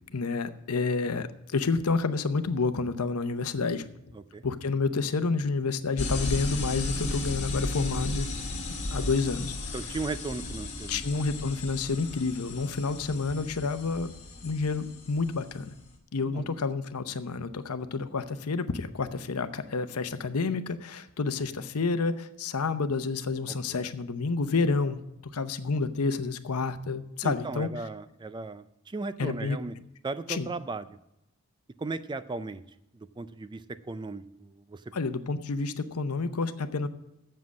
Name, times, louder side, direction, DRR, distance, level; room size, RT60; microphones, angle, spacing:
voice 1, 0.1-3.8 4.4-8.3 8.9-9.7 10.9-14.1 14.4-15.7 16.1-25.0 25.3-27.7 29.2-29.6 30.3-30.5 34.9-36.9, left 4 dB, 85° left, 11 dB, 0.7 m, -29 dB
voice 2, 4.1-4.4 8.9-9.2 9.7-11.2 16.2-16.5 23.5-23.6 27.2-29.8 30.0-31.0 31.8-32.6 32.9-34.9, right 3 dB, 20° right, 13 dB, 0.4 m, -37 dB
sound 1, 6.0-15.9, left 2 dB, 30° left, 1.8 m, -35 dB
7.6 x 7.5 x 8.2 m, 0.86 s
head